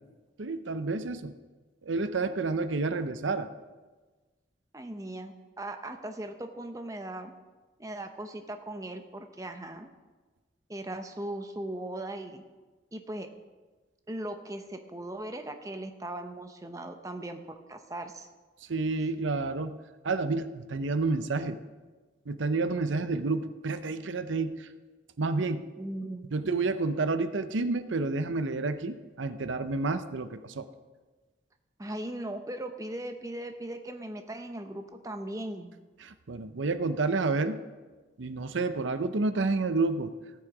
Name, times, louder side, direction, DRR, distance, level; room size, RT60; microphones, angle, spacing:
voice 1, 0.4-1.3 1.8-3.5 18.7-19.8 20.0-21.6 22.3-24.7 25.2-25.6 26.3-30.7 36.0-37.6 38.2-40.1, right 3 dB, 85° right, 10 dB, 0.7 m, -29 dB
voice 2, 4.7-7.3 7.8-9.9 10.7-12.4 12.9-13.3 14.1-18.3 25.8-26.2 31.8-35.7, right 1 dB, 15° right, 6 dB, 0.7 m, -38 dB
18.0 x 6.3 x 4.8 m, 1.3 s
head